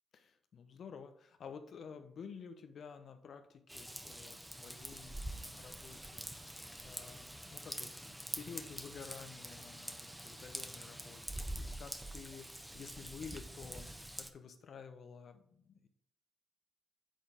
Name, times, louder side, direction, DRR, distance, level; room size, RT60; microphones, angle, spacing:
voice 1, 0.1-13.9 14.1-15.9, left 6 dB, 60° left, 8 dB, 0.9 m, -52 dB
Raindrop / Vehicle horn car horn honking / Trickle dribble, 3.7-14.3, right 1 dB, 5° right, 1.0 m, -46 dB
8.3 x 4.1 x 5.1 m, 0.66 s
hypercardioid pair, 40°, 0 cm